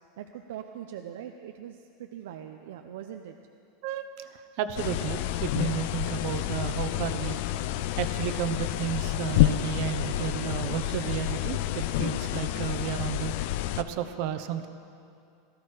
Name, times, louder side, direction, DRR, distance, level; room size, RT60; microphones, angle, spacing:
voice 1, 0.2-3.4, right 10 dB, 80° right, 5 dB, 0.7 m, -41 dB
voice 2, 3.8-7.4 8.0-14.7, right 10 dB, 60° right, 9 dB, 0.9 m, -33 dB
sound 1, 4.8-13.8, left 14 dB, 65° left, 0.5 m, -29 dB
17.5 x 13.5 x 5.0 m, 2.5 s
supercardioid pair, 140°, 0 cm